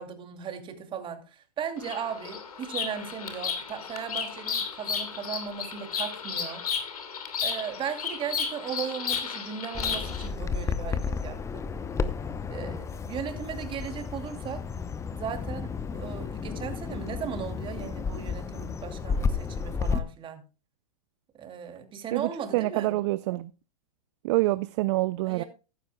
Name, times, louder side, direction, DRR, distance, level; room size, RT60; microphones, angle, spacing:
voice 1, 0.0-6.6 7.4-11.4 12.5-14.6 15.1-20.4 21.3-22.9 25.3-25.4, right 7 dB, 25° right, 2.6 m, -37 dB
Bird vocalization bird call bird song, 1.8-10.3, left 6 dB, 75° left, 2.8 m, -33 dB
Bird vocalization bird call bird song 2, 9.7-20.0, left 5 dB, 15° left, 0.8 m, -32 dB
voice 2, 22.1-23.5 24.2-25.4, right 19 dB, 50° right, 0.5 m, -26 dB
15.0 x 12.0 x 2.3 m
hypercardioid pair, 110°, 19 cm